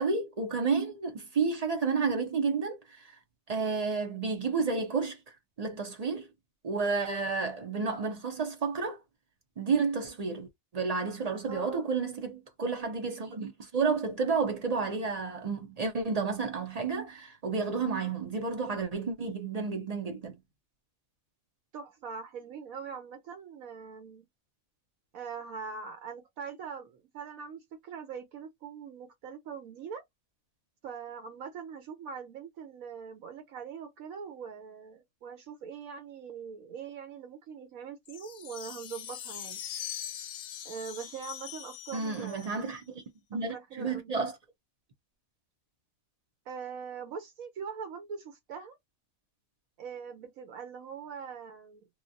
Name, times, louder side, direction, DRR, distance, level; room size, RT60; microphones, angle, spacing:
voice 1, 0.0-2.8 3.5-5.2 5.6-6.3 6.6-9.0 9.6-10.5 10.7-20.4 41.9-43.0 43.3-44.3, right 4 dB, 40° right, 0.6 m, -31 dB
voice 2, 11.4-11.9 21.7-24.3 25.1-30.0 30.8-39.6 40.6-42.7 43.5-44.1 46.5-48.8 49.8-51.9, right 6 dB, 80° right, 1.2 m, -42 dB
sound 1, 38.1-42.8, left 10 dB, 65° left, 0.8 m, -42 dB
3.1 x 2.3 x 2.6 m
omnidirectional pair, 1.4 m